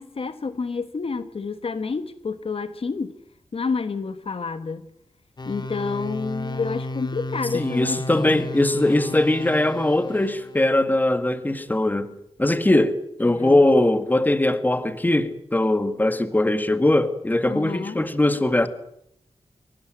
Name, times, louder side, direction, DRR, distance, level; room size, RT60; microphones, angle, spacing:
voice 1, 0.0-3.1 3.5-4.9 5.4-8.5 13.3-13.6 17.5-18.0, left 4 dB, 65° left, 1.4 m, -29 dB
sound 1, 5.4-10.6, left 2 dB, 45° left, 2.1 m, -33 dB
voice 2, 7.5-12.1 12.4-18.7, left 1 dB, 15° left, 2.0 m, -21 dB
24.0 x 18.5 x 9.1 m
wide cardioid pair, 100°, 11 cm